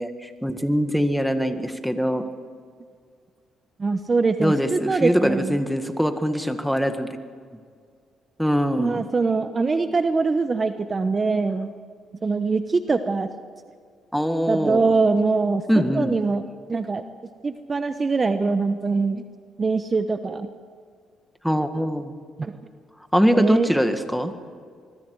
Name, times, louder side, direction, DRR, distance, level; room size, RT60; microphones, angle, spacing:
voice 1, 0.0-2.3 4.4-7.2 8.4-9.1 14.1-14.9 15.7-16.1 21.4-22.2 23.1-24.3, equal, ahead, 7 dB, 1.8 m, -23 dB
voice 2, 3.8-5.6 8.8-11.7 12.2-13.3 14.5-16.4 16.7-17.0 17.4-19.2 19.6-20.5 22.4-22.6 23.3-23.7, right 4 dB, 30° right, 9 dB, 1.0 m, -23 dB
25.5 x 22.0 x 4.8 m, 2.1 s
cardioid pair, 100°, 0 cm